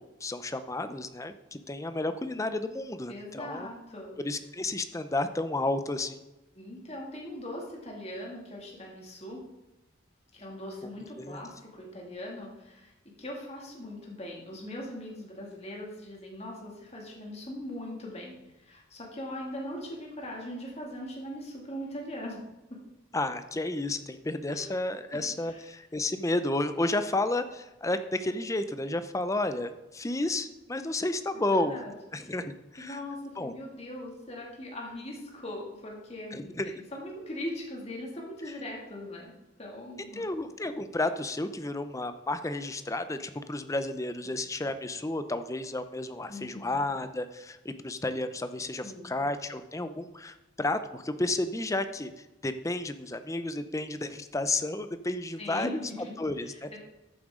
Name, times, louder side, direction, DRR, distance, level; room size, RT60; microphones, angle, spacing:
voice 1, 0.0-3.7 4.2-6.2 10.8-11.4 23.1-31.8 32.1-33.0 33.4-33.5 36.3-36.8 40.1-52.1 52.4-55.8 56.2-56.8, left 2 dB, 15° left, 10 dB, 0.6 m, -32 dB
voice 2, 3.1-4.1 6.5-9.4 10.3-12.9 13.2-22.4 22.7-22.8 24.5-24.7 25.1-25.2 25.5-25.7 31.3-32.0 32.2-32.3 32.8-39.3 39.6-40.3 46.3-46.8 48.8-49.2 55.4-56.8, left 1 dB, 35° left, -2 dB, 2.4 m, -40 dB
14.0 x 7.6 x 3.8 m, 1.0 s
head